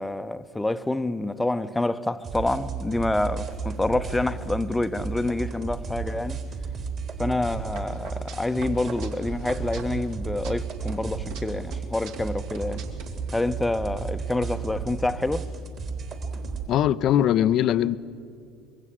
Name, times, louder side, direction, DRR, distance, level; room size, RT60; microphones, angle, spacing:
voice 1, 0.0-6.4 7.2-12.9 13.3-15.5, left 2 dB, 10° left, 0.9 m, -27 dB
sound 1, 2.2-16.7, right 4 dB, 45° right, 3.6 m, -33 dB
sound 2, 7.7-10.1 10.4-11.4 11.7-13.1, right 5 dB, 60° right, 2.8 m, -43 dB
voice 2, 16.7-18.0, left 11 dB, 50° left, 0.6 m, -21 dB
25.5 x 23.0 x 7.9 m
figure-of-eight pair, 60°, 0 cm